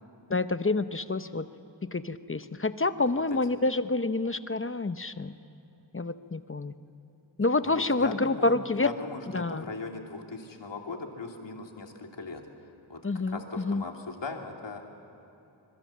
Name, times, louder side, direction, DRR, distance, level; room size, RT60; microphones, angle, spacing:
voice 1, 0.3-1.5 1.9-5.4 5.9-6.7 7.4-8.9 9.3-9.6 13.0-13.8, left 3 dB, 30° left, 11 dB, 0.8 m, -28 dB
voice 2, 7.6-12.5 12.9-14.8, left 3 dB, 70° left, 2 dB, 2.9 m, -39 dB
25.5 x 22.5 x 7.5 m, 3.0 s
wide cardioid pair, 70°, 45 cm